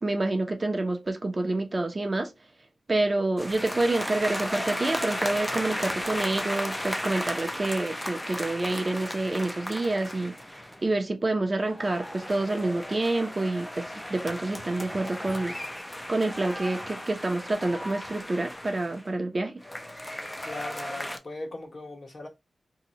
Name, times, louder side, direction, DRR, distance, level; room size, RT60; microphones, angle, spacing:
voice 1, 0.0-2.3 2.9-10.3 10.8-15.5 16.1-19.6, right 2 dB, 35° right, 0.6 m, -28 dB
sound 1, 3.4-10.9 11.6-19.1 19.6-21.2, equal, 10° left, 0.4 m, -35 dB
voice 2, 20.4-22.3, left 2 dB, 45° left, 1.0 m, -39 dB
2.8 x 2.2 x 4.0 m
wide cardioid pair, 95°, 0 cm